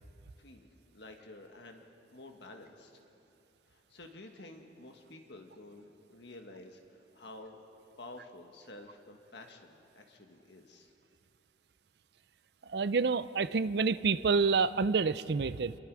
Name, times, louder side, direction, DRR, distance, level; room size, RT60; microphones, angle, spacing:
voice 1, 0.4-1.8 2.1-2.9 3.7-7.6 8.0-10.9, left 2 dB, 65° left, 3 dB, 1.7 m, -51 dB
voice 2, 12.7-15.8, right 4 dB, 60° right, 15 dB, 0.5 m, -28 dB
26.5 x 22.0 x 4.9 m, 2.8 s
head